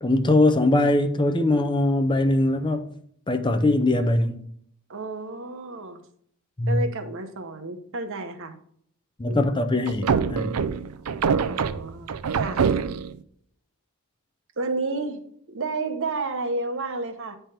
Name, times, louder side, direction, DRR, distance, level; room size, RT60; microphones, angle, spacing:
voice 1, 0.0-2.9 3.3-4.4 6.6-6.8 9.2-10.6, left 2 dB, 20° left, 0.5 m, -21 dB
voice 2, 4.9-6.0 6.7-8.6 9.3-9.5 11.4-12.6 14.6-15.2 15.5-17.4, right 3 dB, 60° right, 1.0 m, -31 dB
sound 1, 9.9-13.2, right 6 dB, 75° right, 0.5 m, -25 dB
8.9 x 3.4 x 5.8 m
head